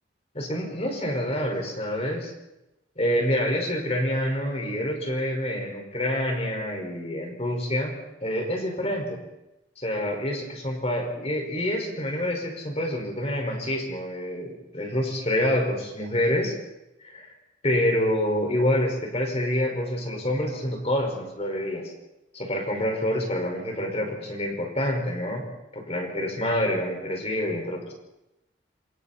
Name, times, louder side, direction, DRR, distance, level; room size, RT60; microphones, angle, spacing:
voice 1, 0.3-2.3 3.0-7.9 8.2-9.2 9.8-16.5 17.0-17.3 17.6-21.9 22.3-25.4 25.7-27.9, left 1 dB, 35° left, 2 dB, 5.3 m, -27 dB
27.0 x 25.0 x 4.3 m, 0.94 s
head